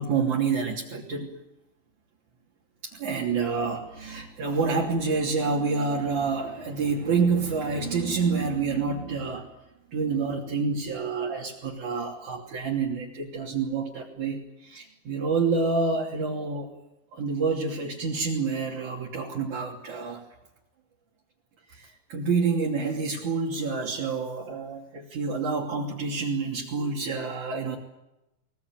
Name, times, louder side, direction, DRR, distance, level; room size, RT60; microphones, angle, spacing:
voice 1, 0.0-1.4 2.8-9.5 9.9-16.7 17.1-20.2 21.7-27.8, right 4 dB, 50° right, -3 dB, 4.3 m, -28 dB
23.5 x 21.5 x 9.2 m, 0.93 s
omnidirectional pair, 4.7 m